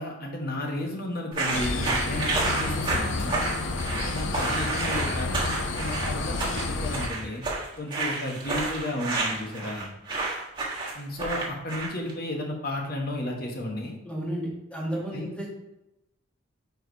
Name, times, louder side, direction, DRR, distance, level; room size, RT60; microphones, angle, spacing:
voice 1, 0.0-3.4 3.9-7.4 7.8-9.9 10.9-14.0 15.1-15.5, left 1 dB, 55° left, 0 dB, 1.3 m, -33 dB
sound 1, 1.3-12.1, right 3 dB, 25° right, 1.5 m, -30 dB
sound 2, 1.5-7.1, left 3 dB, 70° left, 0.7 m, -30 dB
voice 2, 14.0-15.5, right 1 dB, 5° left, -4 dB, 1.8 m, -32 dB
4.9 x 4.6 x 4.6 m, 0.91 s
head